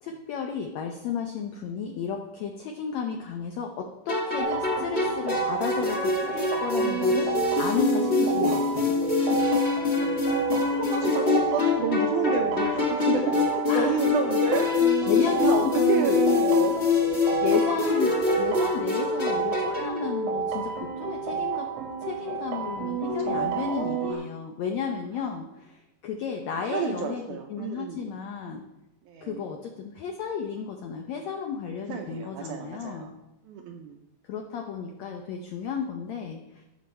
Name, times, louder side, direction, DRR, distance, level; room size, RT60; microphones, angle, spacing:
voice 1, 0.0-8.9 13.7-14.0 15.1-16.2 17.4-21.7 22.0-28.6 29.2-33.1 34.3-36.6, left 6 dB, 85° left, 4 dB, 1.5 m, -33 dB
sound 1, 4.1-20.0, left 4 dB, 65° left, 0.6 m, -25 dB
sound 2, 4.4-24.1, right 5 dB, 65° right, 1.7 m, -30 dB
voice 2, 10.7-14.7 15.4-16.9 17.5-17.6 23.1-24.2 26.6-28.1 29.1-29.5 31.9-33.1 33.4-34.0, right 6 dB, 80° right, 4 dB, 1.8 m, -30 dB
15.0 x 6.3 x 4.3 m, 0.92 s
omnidirectional pair, 4.2 m